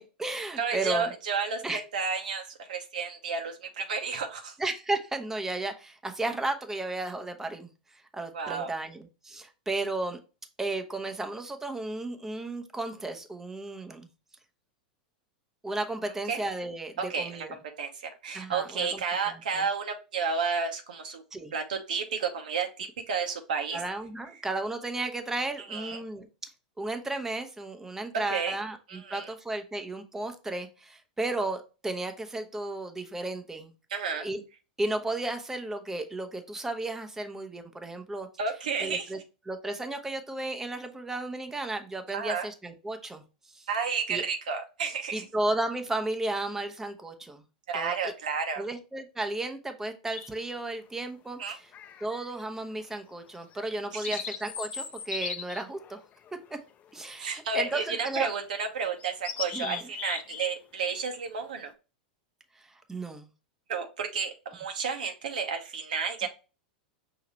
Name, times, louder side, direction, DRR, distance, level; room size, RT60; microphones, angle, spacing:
voice 1, 0.0-1.1 1.6-1.8 4.6-10.2 10.6-14.1 15.6-17.6 18.3-19.6 21.3-21.5 23.7-26.5 26.8-33.7 34.2-34.4 34.8-38.3 38.8-39.2 39.5-43.2 43.5-43.7 44.1-44.2 45.1-47.4 47.7-48.1 48.6-51.7 52.0-56.0 56.9-58.3 59.5-59.8 62.5-63.3, right 2 dB, 10° right, 6 dB, 0.8 m, -34 dB
voice 2, 0.6-4.5 8.3-8.7 16.3-16.4 17.0-17.5 17.8-21.2 21.5-23.8 25.7-26.0 28.3-28.5 28.9-29.3 33.9-34.3 38.4-39.1 42.1-42.5 43.7-45.2 47.7-48.6 51.4-51.6 53.9-54.0 57.2-61.7 63.7-66.3, right 5 dB, 75° right, 4 dB, 0.8 m, -31 dB
sound 1, 50.1-50.6 51.7-52.4 52.8-53.0 53.5-57.0 57.7-58.1 58.5-58.6 59.0-60.5 60.8-61.1, left 6 dB, 30° left, 0.6 m, -39 dB
5.7 x 2.8 x 3.1 m, 0.31 s
hypercardioid pair, 95°, 5 cm